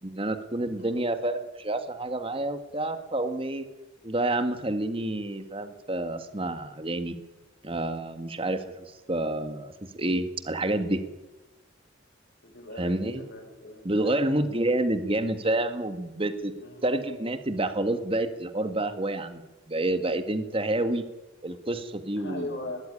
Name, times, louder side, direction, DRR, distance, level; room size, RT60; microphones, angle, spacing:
voice 1, 0.0-3.7 4.0-7.2 7.6-11.0 12.8-13.2 13.8-16.5 16.8-19.4 19.7-21.0 21.4-22.5, right 1 dB, 30° right, 9 dB, 1.7 m, -28 dB
voice 2, 12.4-14.3 16.5-16.8 22.2-22.8, left 1 dB, 65° left, 1 dB, 7.6 m, -39 dB
21.0 x 14.5 x 10.0 m, 1.0 s
head